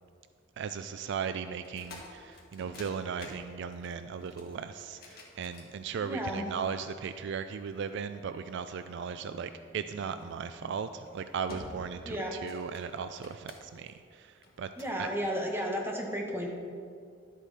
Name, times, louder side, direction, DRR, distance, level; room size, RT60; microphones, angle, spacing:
voice 1, 0.6-14.7 15.0-15.1, right 6 dB, 60° right, 10 dB, 0.3 m, -37 dB
sound 1, 1.6-6.3 7.0-8.3 10.1-10.4 10.9-11.1 11.5-12.0 12.3-13.9 14.4-15.0, left 2 dB, 50° left, 1.7 m, -49 dB
voice 2, 6.0-6.4 12.0-12.4 14.8-16.5, equal, 10° right, 0 dB, 1.4 m, -33 dB
sound 2, 9.0-11.3, equal, 15° left, 1.3 m, -56 dB
12.0 x 8.3 x 4.2 m, 2.3 s
head